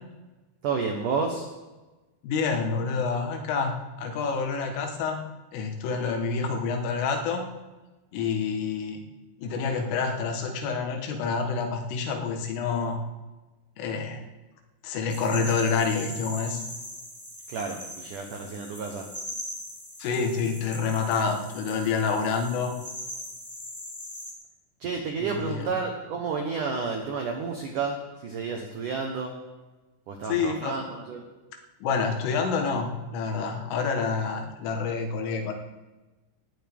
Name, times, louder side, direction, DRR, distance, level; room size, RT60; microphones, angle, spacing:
voice 1, 0.6-1.5 17.5-19.0 24.8-29.3 30.1-31.2, right 5 dB, 85° right, 3 dB, 1.8 m, -31 dB
voice 2, 2.2-5.2 5.5-7.4 8.1-9.0 9.4-13.0 13.8-14.2 14.8-16.6 20.0-22.8 25.2-25.7 30.3-30.8 31.8-35.5, left 5 dB, 85° left, 3 dB, 4.1 m, -28 dB
sound 1, 15.1-24.3, left 1 dB, 5° left, 2.8 m, -40 dB
19.0 x 14.0 x 3.6 m, 1.2 s
omnidirectional pair, 5.6 m